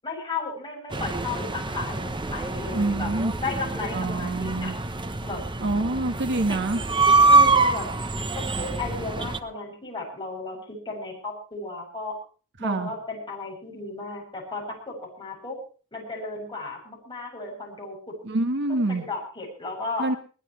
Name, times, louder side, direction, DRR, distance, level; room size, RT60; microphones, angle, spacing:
voice 1, 0.0-3.1 3.4-4.7 5.2-5.5 7.3-7.9 8.3-12.1 12.6-15.6 15.9-18.2 18.7-20.1, left 3 dB, 20° left, -1 dB, 7.8 m, -34 dB
sound 1, 0.9-9.4, right 3 dB, 20° right, 0.9 m, -24 dB
voice 2, 2.7-3.3 3.9-4.8 5.6-6.8 12.6-12.9 18.2-19.1 20.0-20.2, right 2 dB, 55° right, 7 dB, 1.4 m, -26 dB
22.0 x 19.0 x 3.2 m, 0.39 s
head